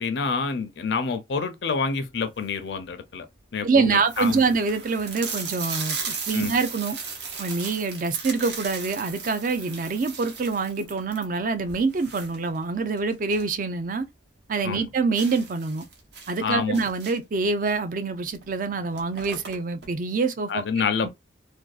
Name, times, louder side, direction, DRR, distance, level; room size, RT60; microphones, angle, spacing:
voice 1, 0.0-3.3 3.5-4.4 6.3-6.5 14.6-14.9 16.4-16.8 20.5-21.1, left 5 dB, 70° left, 0.5 m, -27 dB
sound 1, 2.2-2.7 3.3-3.4 3.6-3.7 4.0-13.6 13.9-14.0 14.4-14.5 15.2-17.4 18.3-18.5 18.7-19.9, right 5 dB, 65° right, 0.7 m, -36 dB
voice 2, 3.6-7.0 7.4-14.0 14.5-15.9 16.3-20.6, right 4 dB, 45° right, 0.4 m, -25 dB
2.5 x 2.3 x 2.3 m
head